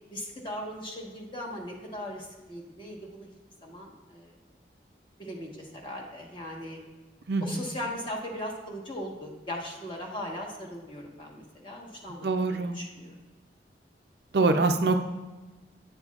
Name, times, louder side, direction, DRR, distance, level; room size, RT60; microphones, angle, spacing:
voice 1, 0.1-3.3 3.6-4.3 5.2-6.8 7.4-13.2, left 1 dB, 30° left, -1 dB, 1.2 m, -38 dB
voice 2, 12.2-12.8 14.3-15.0, right 3 dB, 70° right, 6 dB, 0.5 m, -24 dB
9.3 x 6.6 x 2.4 m, 1.2 s
head